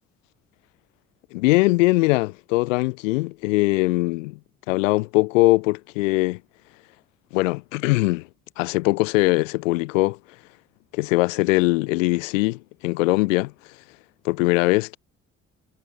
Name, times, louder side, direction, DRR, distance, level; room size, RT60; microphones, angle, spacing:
voice 1, 1.3-4.4 4.7-6.4 7.3-8.3 8.6-10.2 10.9-13.5 14.2-15.0, left 23 dB, 80° left, 0.7 m, -21 dB
hypercardioid pair, 45°, 38 cm